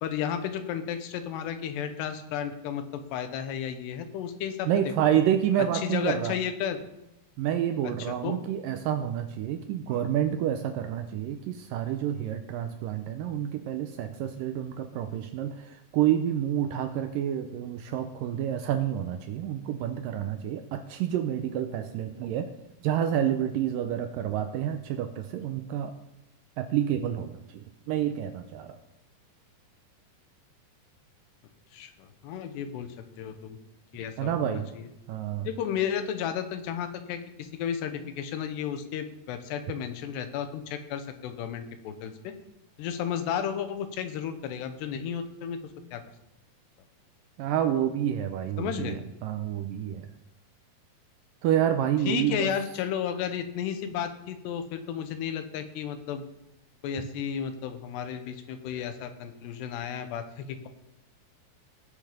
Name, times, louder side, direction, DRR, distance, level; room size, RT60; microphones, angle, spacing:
voice 1, 0.0-4.9 5.8-6.8 8.1-8.3 9.9-10.0 31.7-33.6 33.9-34.9 35.4-42.3 42.8-45.6 45.9-46.0 48.6-49.0 52.1-56.2 56.8-60.7, left 8 dB, 90° left, 9 dB, 3.2 m, -33 dB
voice 2, 4.7-6.4 7.4-22.5 22.8-25.9 26.6-28.8 34.2-34.7 35.1-35.5 47.4-50.1 51.4-52.5, right 10 dB, 80° right, 8 dB, 2.0 m, -28 dB
19.0 x 6.8 x 5.1 m, 0.92 s
omnidirectional pair, 4.7 m